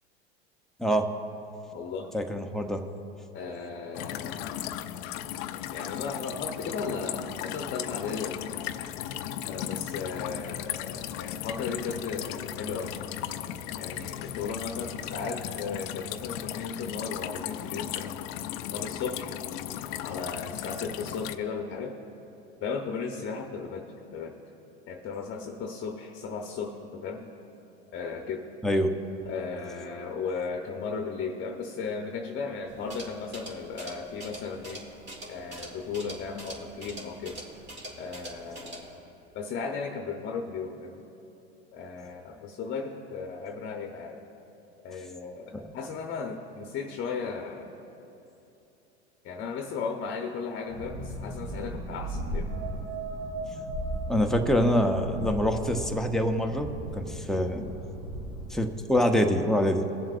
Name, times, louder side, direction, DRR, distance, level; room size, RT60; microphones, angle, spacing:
voice 1, 0.8-1.1 2.1-2.8 28.6-28.9 45.5-45.7 54.1-57.6 58.5-59.9, equal, ahead, 3 dB, 0.8 m, -25 dB
voice 2, 1.7-2.1 3.3-4.6 5.7-8.6 9.4-13.2 13.8-18.2 18.7-19.3 20.0-22.0 22.6-24.4 24.9-27.3 27.9-28.5 29.2-34.9 35.2-37.4 38.0-38.9 39.3-41.0 41.7-44.2 44.8-47.8 49.2-52.6, left 5 dB, 35° left, 3 dB, 0.9 m, -36 dB
sound 1, 3.9-21.4, left 11 dB, 55° left, 0.6 m, -36 dB
sound 2, 32.7-38.9, right 1 dB, 35° right, 2.4 m, -44 dB
sound 3, 50.7-58.5, right 2 dB, 65° right, 2.5 m, -36 dB
21.5 x 7.4 x 2.5 m, 3.0 s
hypercardioid pair, 95°, 33 cm